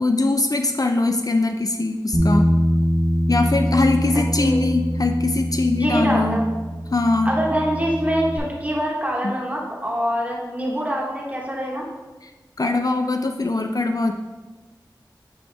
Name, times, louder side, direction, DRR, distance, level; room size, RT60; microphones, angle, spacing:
voice 1, 0.0-2.4 3.3-6.4 6.9-7.3 9.2-9.3 12.6-14.1, left 2 dB, 50° left, 5 dB, 0.4 m, -21 dB
Bass guitar, 2.1-8.4, equal, 10° left, 1.4 m, -23 dB
voice 2, 4.1-4.7 5.8-6.5 7.2-11.8, equal, 20° right, -3 dB, 1.5 m, -25 dB
8.7 x 4.2 x 3.5 m, 1.2 s
wide cardioid pair, 50°, 8 cm